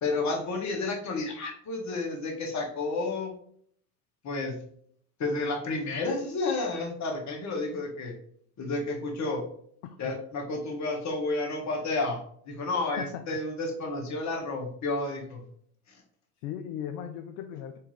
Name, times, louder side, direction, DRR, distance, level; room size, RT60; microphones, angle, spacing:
voice 1, 0.0-3.3 4.2-4.6 5.2-8.1 8.6-9.5 10.0-12.2 12.4-15.4 15.9-16.0, left 3 dB, 35° left, 1 dB, 1.6 m, -31 dB
voice 2, 9.8-10.2 13.0-13.1 16.4-17.8, left 10 dB, 60° left, 7 dB, 0.6 m, -37 dB
4.5 x 3.5 x 3.3 m, 0.64 s
hypercardioid pair, 80°, 47 cm